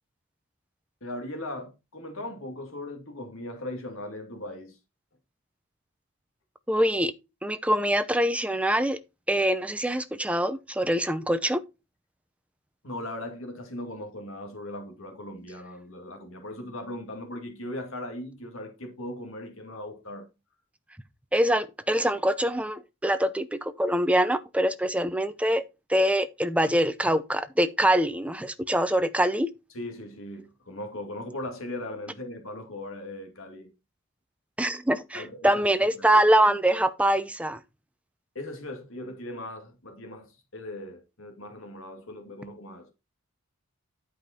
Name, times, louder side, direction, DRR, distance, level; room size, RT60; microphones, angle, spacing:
voice 1, 1.0-4.8 12.8-20.3 29.7-33.7 35.1-36.2 38.3-42.9, left 1 dB, 65° left, 2.2 m, -38 dB
voice 2, 6.7-7.1 7.4-9.0 9.3-11.6 21.3-25.6 25.9-29.5 34.6-37.6, right 1 dB, 5° right, 0.6 m, -24 dB
11.5 x 5.1 x 4.3 m
head